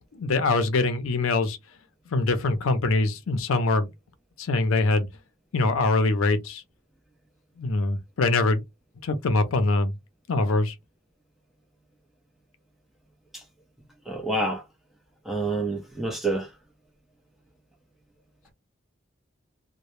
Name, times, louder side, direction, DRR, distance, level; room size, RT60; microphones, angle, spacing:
voice 1, 0.1-1.6 2.1-3.9 4.4-5.1 5.5-6.6 7.6-8.6 9.0-9.9 10.3-10.7, left 3 dB, 85° left, 0.5 m, -23 dB
voice 2, 14.1-14.6 15.3-16.5, right 2 dB, ahead, 0.5 m, -27 dB
2.1 x 2.0 x 3.0 m
head